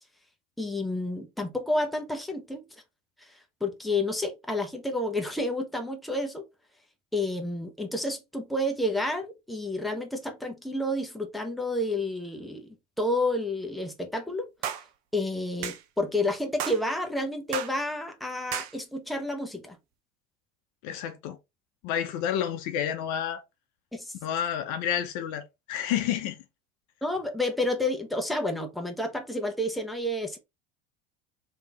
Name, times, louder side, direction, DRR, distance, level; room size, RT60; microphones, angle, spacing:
voice 1, 0.6-2.6 3.2-3.3 3.6-6.4 7.1-14.5 15.1-19.8 23.9-24.1 27.0-30.4, left 1 dB, ahead, 0.9 m, -30 dB
sound 1, 14.6-14.9 15.6-15.8 16.6-16.8 17.5-17.8 18.5-18.7, right 10 dB, 60° right, 0.8 m, -32 dB
voice 2, 20.8-21.4 21.8-23.4 24.2-26.4, left 10 dB, 55° left, 0.8 m, -30 dB
3.5 x 2.9 x 3.4 m
hypercardioid pair, 75°, 36 cm